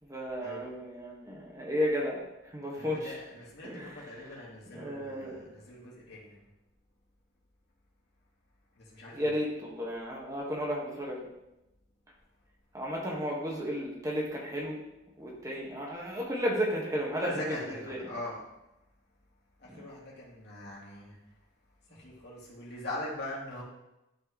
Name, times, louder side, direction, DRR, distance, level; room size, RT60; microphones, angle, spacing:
voice 1, 0.0-3.2 3.6-4.4 4.7-5.4 9.1-11.3 12.7-14.8 15.2-18.1 19.7-19.9 21.9-22.0, equal, 15° right, -3 dB, 1.6 m, -34 dB
voice 2, 2.7-6.4 8.8-9.4 17.1-18.4 19.6-21.2 21.9-23.6, left 1 dB, 55° left, -5 dB, 2.4 m, -42 dB
11.5 x 4.6 x 3.1 m, 0.94 s
head